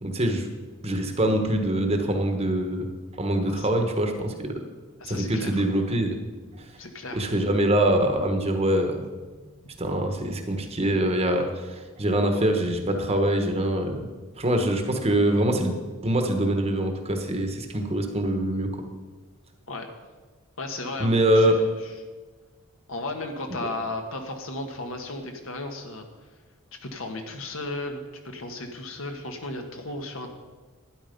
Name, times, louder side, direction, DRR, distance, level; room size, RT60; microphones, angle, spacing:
voice 1, 0.0-0.5 0.8-2.9 3.2-4.6 5.1-6.2 7.1-9.0 9.8-11.5 12.0-14.1 14.4-15.7 16.0-18.7 21.0-21.5, right 1 dB, 30° right, 5 dB, 1.3 m, -24 dB
voice 2, 5.0-5.6 6.8-7.3 19.7-19.9 20.6-21.8 22.9-26.1 26.8-30.3, left 2 dB, 65° left, 4 dB, 1.5 m, -35 dB
12.0 x 9.9 x 5.3 m, 1.3 s
head